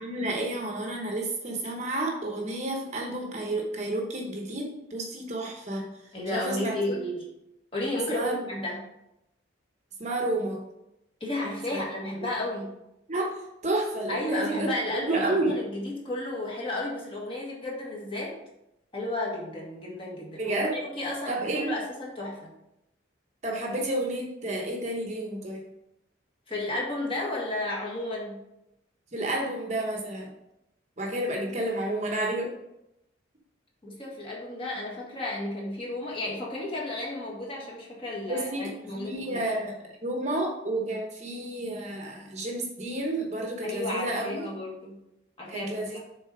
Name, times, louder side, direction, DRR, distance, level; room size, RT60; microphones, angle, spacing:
voice 1, 0.0-5.8 6.3-7.0 8.1-8.4 10.0-10.6 11.7-11.8 13.1-13.3 13.6-14.7 15.1-15.5 20.4-20.7 21.3-21.7 23.4-25.6 29.1-30.3 31.0-32.5 38.3-44.4 45.5-46.0, right 1 dB, 35° right, 1 dB, 1.0 m, -30 dB
voice 2, 6.1-7.3 7.7-8.9 11.2-12.7 14.1-18.4 18.9-22.5 26.5-28.4 33.8-39.4 43.6-45.0 45.4-45.7, left 1 dB, 25° left, -3 dB, 1.6 m, -33 dB
6.7 x 4.1 x 4.8 m, 0.86 s
head